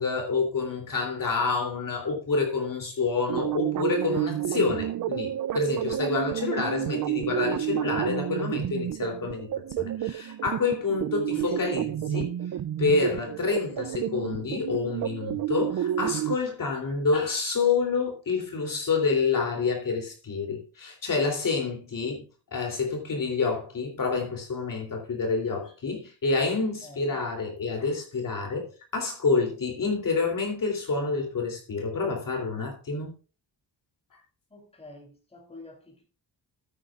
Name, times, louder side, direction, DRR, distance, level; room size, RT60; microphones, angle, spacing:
voice 1, 0.0-9.5 9.8-12.3 12.8-22.2 22.5-28.7 28.9-33.1, left 4 dB, 45° left, 3.1 m, -28 dB
sound 1, 3.3-16.4, right 12 dB, 50° right, 0.5 m, -30 dB
voice 2, 26.8-27.2 34.5-36.0, left 2 dB, 15° left, 3.3 m, -47 dB
14.5 x 9.0 x 2.4 m
wide cardioid pair, 170°, 43 cm